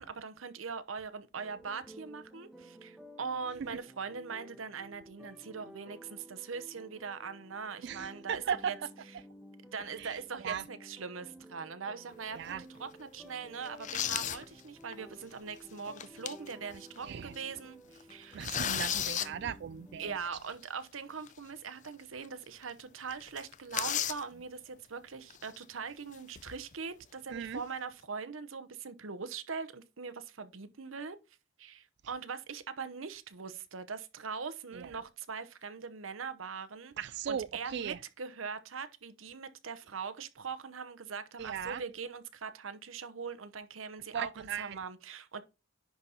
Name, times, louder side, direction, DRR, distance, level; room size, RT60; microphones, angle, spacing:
voice 1, 0.0-8.8 9.7-18.5 20.0-31.2 31.6-45.4, right 5 dB, 90° right, 0.9 m, -41 dB
sound 1, 1.3-20.2, equal, ahead, 0.9 m, -54 dB
voice 2, 7.8-8.7 10.0-10.1 10.4-10.6 12.4-12.6 17.0-17.3 18.3-20.2 27.3-27.6 34.7-34.9 37.0-38.0 41.4-41.8 44.1-44.8, right 7 dB, 60° right, 0.4 m, -37 dB
sound 2, 12.3-12.5 13.0-13.1 13.6-14.4 14.9-15.0 15.8-16.5 17.0-17.1 17.3-17.6 18.0-19.3 21.3-21.4 21.8-21.9 22.2-22.3 22.6-22.8 23.1-24.2 25.3-25.6 26.1-26.7, left 10 dB, 40° left, 0.5 m, -34 dB
10.5 x 4.1 x 4.3 m
head